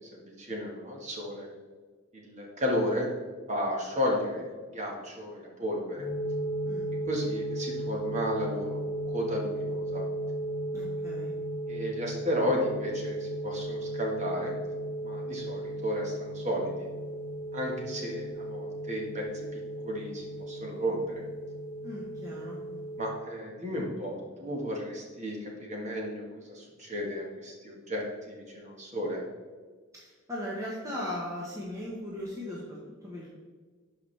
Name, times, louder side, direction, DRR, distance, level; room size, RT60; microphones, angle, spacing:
voice 1, 0.1-1.5 2.1-3.1 3.5-6.1 7.1-10.1 11.7-14.5 15.0-16.9 17.5-21.2 23.0-29.2, equal, 30° right, -1 dB, 1.5 m, -33 dB
sound 1, 6.0-23.1, right 1 dB, 45° left, 2.2 m, -35 dB
voice 2, 10.7-11.3 21.8-22.8 29.9-33.3, left 1 dB, 15° right, -5 dB, 1.1 m, -38 dB
11.5 x 4.9 x 3.3 m, 1.5 s
head